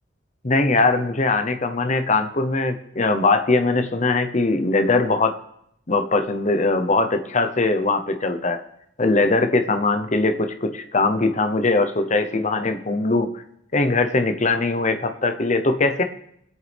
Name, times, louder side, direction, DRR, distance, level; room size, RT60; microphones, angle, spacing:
voice 1, 0.4-5.3 5.9-8.6 9.0-13.3 13.7-16.0, left 3 dB, 40° left, 8 dB, 0.9 m, -21 dB
21.5 x 8.2 x 3.5 m, 0.74 s
head